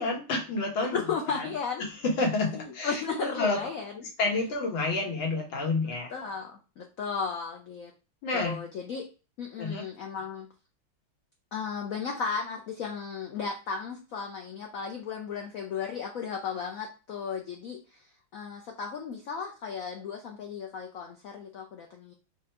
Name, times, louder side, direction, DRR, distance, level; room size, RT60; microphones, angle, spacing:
voice 1, 0.0-1.0 1.3-1.5 1.8-3.6 4.2-6.1 8.2-8.6 9.6-9.8, left 3 dB, 70° left, 1 dB, 1.9 m, -29 dB
voice 2, 0.9-1.9 2.5-3.9 6.1-7.9 8.3-9.0 9.4-10.5 11.5-18.0 18.3-22.1, left 6 dB, 85° left, 2 dB, 0.7 m, -35 dB
4.3 x 2.5 x 4.3 m, 0.32 s
omnidirectional pair, 2.3 m